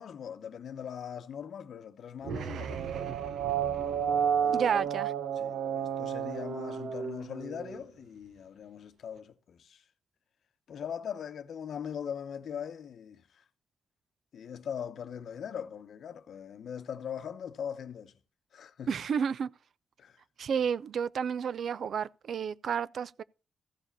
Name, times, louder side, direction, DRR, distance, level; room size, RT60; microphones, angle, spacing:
voice 1, 0.0-3.0 4.4-4.9 5.3-9.8 10.7-13.4 14.3-18.1 18.5-18.9 20.0-20.2, left 8 dB, 70° left, 0.8 m, -41 dB
sound 1, 2.2-7.8, right 8 dB, 85° right, 0.8 m, -32 dB
voice 2, 4.5-5.1 18.9-19.5 20.4-23.2, right 7 dB, 65° right, 0.4 m, -31 dB
14.5 x 5.0 x 5.4 m
cardioid pair, 120°, 0 cm